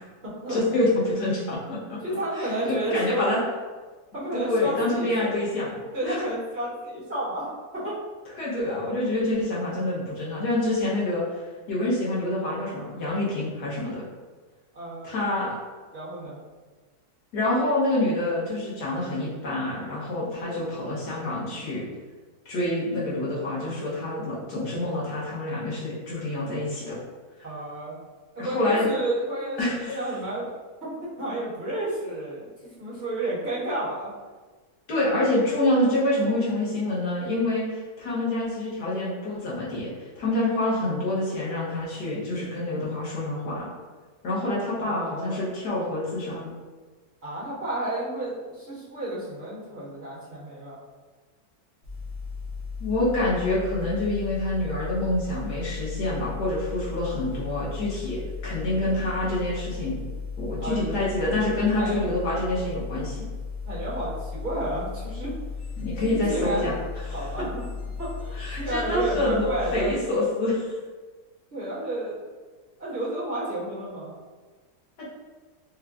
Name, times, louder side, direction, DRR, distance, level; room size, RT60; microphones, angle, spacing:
voice 1, 0.5-2.0 2.3-3.4 4.3-6.2 8.4-14.0 15.0-15.5 17.3-21.8 22.4-27.0 28.4-28.9 29.6-30.0 34.9-43.7 44.2-46.5 52.8-60.0 60.4-63.3 65.8-66.7 67.0-67.4 68.3-70.8, left 1 dB, 90° left, -7 dB, 1.6 m, -27 dB
voice 2, 2.0-3.3 4.1-5.1 5.9-8.0 14.7-15.2 15.9-16.4 27.4-28.0 28.4-30.4 30.8-32.5 32.8-34.1 44.8-45.4 47.2-50.8 60.6-60.9 61.8-62.0 63.7-65.3 66.0-66.7 67.1-67.6 68.0-70.0 71.5-72.2 72.8-74.1, right 1 dB, 45° right, -12 dB, 1.8 m, -31 dB
sound 1, 51.8-69.9, left 5 dB, 65° left, 1.2 m, -35 dB
5.1 x 2.3 x 2.4 m, 1.4 s
omnidirectional pair, 1.7 m